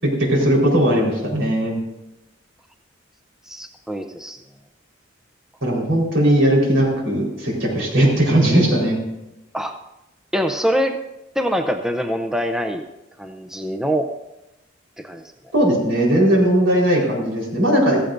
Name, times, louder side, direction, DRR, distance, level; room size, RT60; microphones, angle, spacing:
voice 1, 0.0-1.8 5.6-9.0 15.5-18.0, right 1 dB, 75° right, -2 dB, 4.3 m, -18 dB
voice 2, 3.5-4.4 7.8-7.9 9.5-9.7 10.3-11.0 11.4-12.8 13.2-14.1 15.0-15.2, equal, 5° right, 5 dB, 0.5 m, -24 dB
15.5 x 15.0 x 2.6 m, 0.93 s
head